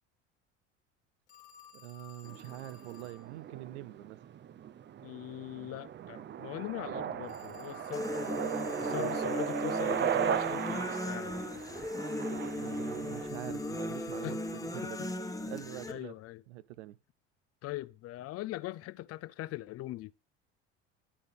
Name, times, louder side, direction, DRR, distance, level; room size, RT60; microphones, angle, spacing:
Telephone, 1.3-3.3 7.2-9.3 13.3-15.3, left 7 dB, 85° left, 1.5 m, -55 dB
voice 1, 1.7-4.2 8.9-9.4 12.5-15.1 15.5-16.1 16.5-17.0, right 16 dB, 80° right, 0.6 m, -45 dB
sound 1, 2.2-13.3, right 9 dB, 35° right, 0.6 m, -37 dB
voice 2, 5.0-8.1 8.8-11.3 14.2-14.4 14.8-15.1 15.9-16.4 17.6-20.1, left 16 dB, 45° left, 0.4 m, -41 dB
sound 2, 7.9-15.9, left 1 dB, 10° left, 1.1 m, -37 dB
11.0 x 6.5 x 3.5 m
hypercardioid pair, 70°, 33 cm